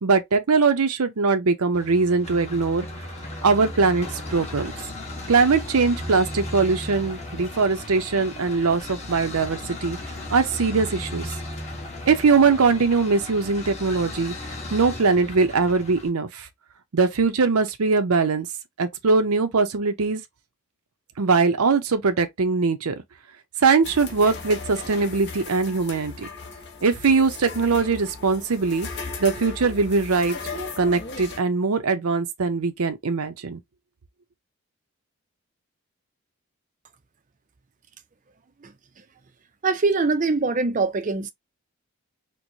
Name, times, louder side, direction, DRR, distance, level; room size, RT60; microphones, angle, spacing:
voice 1, 0.0-2.9 3.4-4.7 5.3-10.0 10.3-11.3 12.1-14.3 14.7-16.5 16.9-18.5 18.8-20.2 21.2-23.0 23.6-26.3 26.8-28.9 29.2-30.4 30.8-33.6, right 4 dB, 80° right, 0.6 m, -21 dB
sound 1, 1.7-16.1, left 1 dB, 30° left, 1.2 m, -36 dB
sound 2, 23.8-31.4, left 4 dB, 50° left, 0.9 m, -37 dB
voice 2, 39.6-41.3, right 3 dB, 35° right, 0.5 m, -23 dB
4.5 x 2.1 x 2.6 m
head